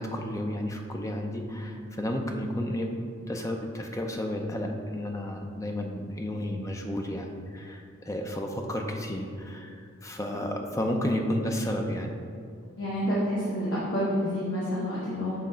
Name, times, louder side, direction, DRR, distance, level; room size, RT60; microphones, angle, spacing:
voice 1, 0.0-3.0 3.3-12.1, left 1 dB, 15° left, 3 dB, 0.5 m, -32 dB
voice 2, 12.8-15.5, equal, 60° left, -8 dB, 1.3 m, -28 dB
7.8 x 3.2 x 5.0 m, 2.4 s
head